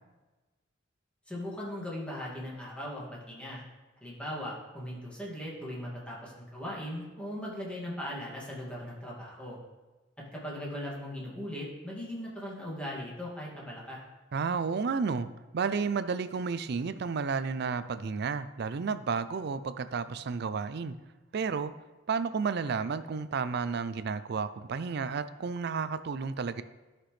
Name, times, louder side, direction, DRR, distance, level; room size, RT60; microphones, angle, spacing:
voice 1, 1.3-3.6 4.0-9.6 10.3-14.0, equal, 5° left, -5 dB, 2.2 m, -39 dB
voice 2, 14.3-15.3 15.5-21.0 21.3-21.7 22.1-26.6, right 5 dB, 60° right, 13 dB, 0.4 m, -32 dB
13.0 x 5.9 x 3.3 m, 1.2 s
head